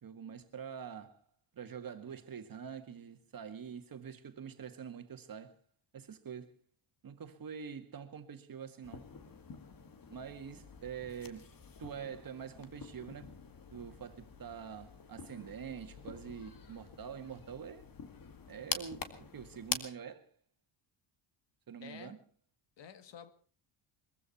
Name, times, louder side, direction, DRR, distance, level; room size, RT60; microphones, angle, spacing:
voice 1, 0.0-1.2 1.5-5.6 5.9-6.6 7.0-9.0 10.1-11.5 11.8-13.3 13.7-17.9 18.5-20.3 21.7-22.2, right 7 dB, 45° right, 2.0 m, -45 dB
sound 1, 8.8-19.8, left 6 dB, 45° left, 2.1 m, -46 dB
voice 2, 21.8-22.2 22.8-23.3, left 7 dB, 60° left, 1.9 m, -50 dB
22.0 x 15.0 x 4.3 m
cardioid pair, 95°, 50 cm